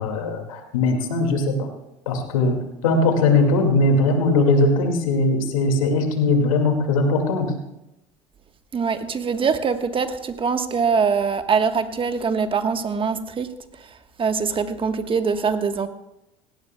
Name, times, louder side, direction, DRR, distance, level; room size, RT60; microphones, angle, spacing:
voice 1, 0.0-1.7 2.1-2.6 2.8-7.5, left 2 dB, 90° left, 4 dB, 2.1 m, -20 dB
voice 2, 8.7-15.9, right 5 dB, 30° right, 8 dB, 1.3 m, -23 dB
18.0 x 16.5 x 2.2 m, 0.90 s
hypercardioid pair, 80°, 17 cm